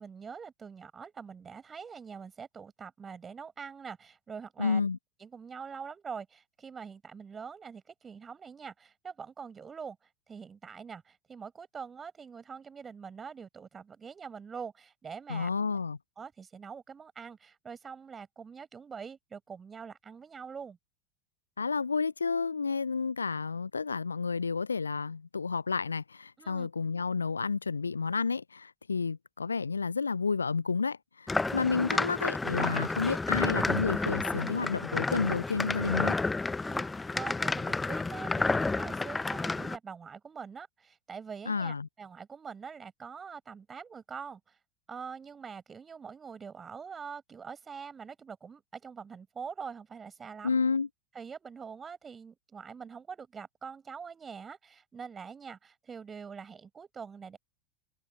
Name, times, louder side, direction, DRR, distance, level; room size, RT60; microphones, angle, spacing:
voice 1, 0.0-4.8 5.2-10.0 10.3-15.5 16.2-20.8 26.4-26.7 31.4-32.1 36.6-44.6 44.9-50.6 51.1-57.4, right 6 dB, 20° right, 6.0 m, -44 dB
voice 2, 4.6-5.0 15.3-16.0 21.6-31.0 31.5-36.2 41.5-41.9 50.4-50.9, left 5 dB, 80° left, 0.8 m, -30 dB
sound 1, 31.3-39.8, left 3 dB, 10° left, 1.1 m, -30 dB
open air
figure-of-eight pair, 85°, 0 cm